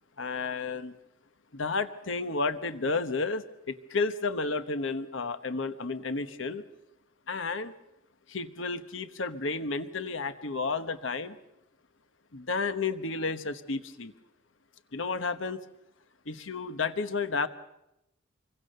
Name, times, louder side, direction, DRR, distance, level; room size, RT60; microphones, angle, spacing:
voice 1, 0.2-0.9 1.5-6.6 7.3-7.7 8.3-11.4 12.3-14.1 14.9-15.6 16.3-17.5, left 4 dB, 75° left, 11 dB, 1.2 m, -32 dB
26.5 x 22.5 x 6.8 m, 0.88 s
head